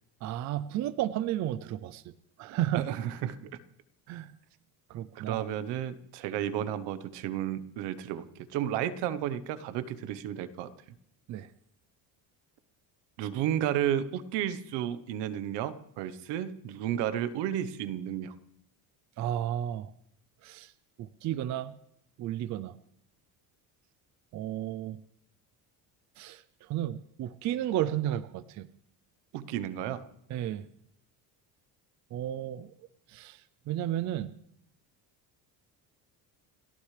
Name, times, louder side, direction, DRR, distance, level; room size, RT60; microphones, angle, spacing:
voice 1, 0.2-2.1 2.4-2.9 4.1-4.3 4.9-5.4 11.3-11.5 19.2-19.9 20.4-20.7 21.0-21.8 22.2-22.8 24.3-25.0 26.2-28.7 30.3-30.7 32.1-32.7 33.1-33.4 33.7-34.3, right 12 dB, 45° right, 15 dB, 0.5 m, -33 dB
voice 2, 2.7-3.5 5.1-10.7 13.2-18.3 29.3-30.1, right 10 dB, 90° right, 13 dB, 1.1 m, -32 dB
29.5 x 13.0 x 3.3 m, 0.73 s
cardioid pair, 170°, 40 cm